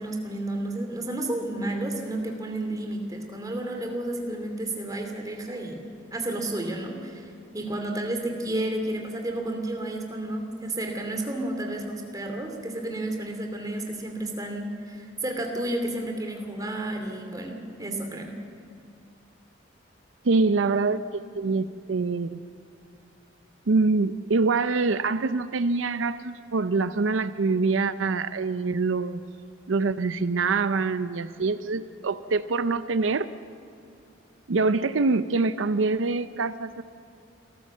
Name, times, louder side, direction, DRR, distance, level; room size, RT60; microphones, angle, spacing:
voice 1, 0.0-5.8 6.1-18.3, right 1 dB, 20° right, 3 dB, 2.6 m, -31 dB
voice 2, 20.2-22.4 23.7-29.2 29.7-33.3 34.5-36.8, right 3 dB, 80° right, 13 dB, 0.6 m, -25 dB
27.5 x 13.5 x 7.4 m, 2.5 s
head